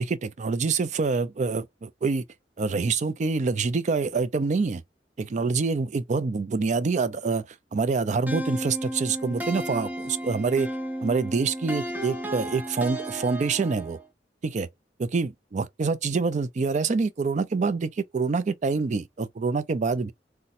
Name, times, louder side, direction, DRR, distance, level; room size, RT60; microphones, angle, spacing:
voice 1, 0.0-2.2 2.6-4.8 5.2-7.4 7.7-10.7 11.0-14.0 14.4-14.7 15.0-20.1, right 4 dB, 45° right, 0.4 m, -26 dB
sound 1, 8.3-14.0, right 1 dB, 10° right, 0.7 m, -33 dB
4.0 x 2.2 x 2.6 m
head